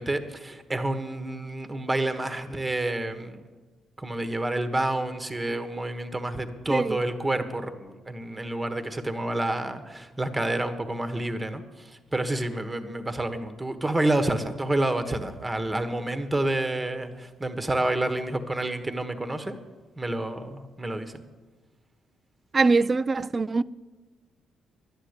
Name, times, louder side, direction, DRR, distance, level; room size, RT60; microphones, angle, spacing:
voice 1, 0.0-3.4 4.0-11.6 12.1-19.6 20.0-21.1, right 1 dB, 15° right, 1.2 m, -29 dB
voice 2, 22.5-23.6, right 4 dB, 30° right, 0.4 m, -23 dB
11.5 x 10.0 x 8.1 m
cardioid pair, 90°, 0 cm